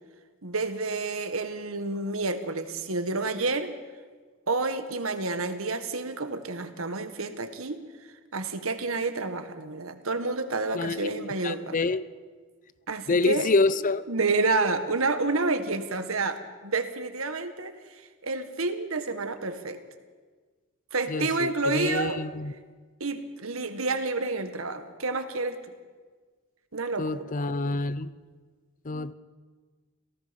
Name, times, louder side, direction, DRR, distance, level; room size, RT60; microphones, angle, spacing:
voice 1, 0.4-3.7 4.5-7.8 8.3-11.8 12.9-13.5 14.1-17.7 18.2-19.8 20.9-22.2 23.0-25.6 26.7-27.2, right 3 dB, 80° right, 1.7 m, -29 dB
voice 2, 10.7-12.0 13.1-14.0 21.1-22.5 27.0-28.1 28.8-29.1, left 3 dB, 40° left, 0.6 m, -27 dB
28.0 x 18.0 x 5.3 m
head